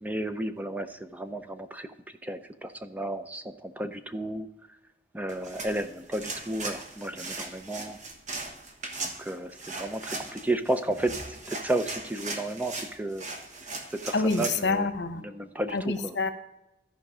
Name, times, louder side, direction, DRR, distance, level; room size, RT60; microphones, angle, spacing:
voice 1, 0.0-1.9 2.2-4.5 5.1-8.0 9.0-13.3 13.9-14.9 15.2-16.1, right 1 dB, 10° right, 9 dB, 0.5 m, -33 dB
sound 1, 5.3-14.6, right 3 dB, 45° right, 1.3 m, -38 dB
voice 2, 14.1-15.2 15.7-16.3, left 3 dB, 75° left, 10 dB, 0.9 m, -27 dB
13.5 x 5.1 x 4.9 m, 0.92 s
head